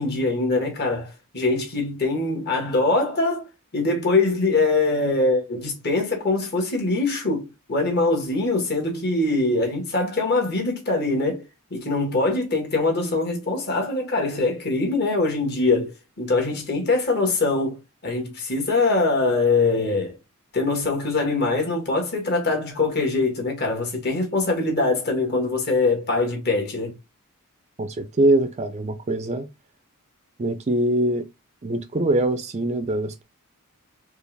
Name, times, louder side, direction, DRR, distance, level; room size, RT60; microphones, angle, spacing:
voice 1, 0.0-3.5 3.7-11.4 11.7-17.8 18.0-20.1 20.5-26.9, left 3 dB, 45° left, 1.6 m, -23 dB
voice 2, 27.8-29.5 30.4-31.3 31.6-33.2, right 1 dB, 30° right, 0.4 m, -23 dB
4.5 x 2.4 x 3.4 m
head